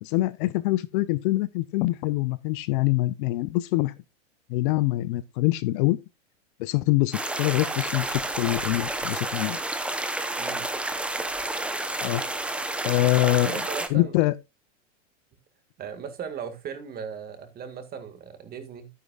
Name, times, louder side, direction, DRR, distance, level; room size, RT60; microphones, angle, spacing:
voice 1, 0.0-3.9 4.5-6.0 6.6-9.6 12.0-12.2 12.8-13.6 13.9-14.3, left 18 dB, 45° left, 0.5 m, -24 dB
sound 1, 7.1-13.9, right 2 dB, 5° right, 0.7 m, -30 dB
voice 2, 10.4-10.7 13.4-14.1 15.8-18.9, right 7 dB, 25° right, 1.9 m, -37 dB
11.5 x 9.6 x 2.3 m
supercardioid pair, 145°, 36 cm